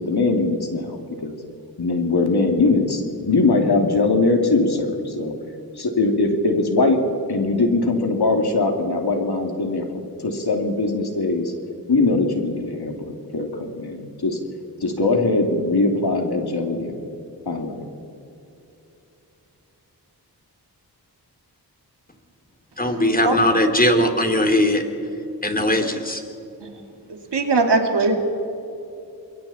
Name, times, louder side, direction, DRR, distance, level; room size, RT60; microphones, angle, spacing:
voice 1, 0.0-1.3 1.8-5.3 5.8-7.0 7.3-9.8 10.2-11.5 11.9-14.4 14.8-17.0 17.5-17.9, left 3 dB, 70° left, 3 dB, 2.9 m, -21 dB
voice 2, 22.8-24.8 25.4-26.2, left 1 dB, 20° left, 5 dB, 3.0 m, -19 dB
voice 3, 27.3-28.3, right 3 dB, 85° right, 4 dB, 2.6 m, -19 dB
28.5 x 22.0 x 4.4 m, 2.9 s
cardioid pair, 55°, 40 cm